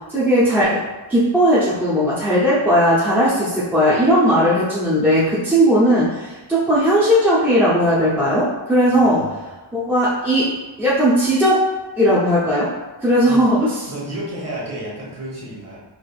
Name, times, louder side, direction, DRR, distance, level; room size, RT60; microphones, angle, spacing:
voice 1, 0.1-0.8 1.1-9.2 9.7-11.7 12.0-12.7 13.0-13.7, equal, 5° right, -10 dB, 0.7 m, -17 dB
voice 2, 8.9-9.7 13.3-13.5 13.9-15.8, right 1 dB, 35° right, -7 dB, 1.4 m, -32 dB
4.4 x 2.5 x 2.4 m, 1.2 s
wide cardioid pair, 130°, 47 cm